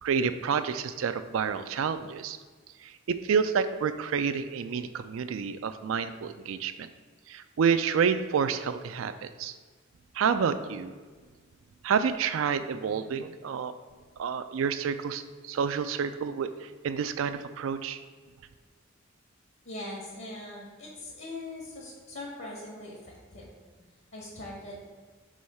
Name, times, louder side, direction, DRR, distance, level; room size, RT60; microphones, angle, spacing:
voice 1, 0.0-2.4 2.8-6.9 7.3-9.5 10.1-10.9 11.8-13.7 14.2-18.0, right 6 dB, 75° right, 10 dB, 0.4 m, -29 dB
voice 2, 19.6-23.5 24.1-24.8, left 1 dB, 65° left, -3 dB, 1.5 m, -41 dB
6.2 x 3.1 x 5.5 m, 1.5 s
head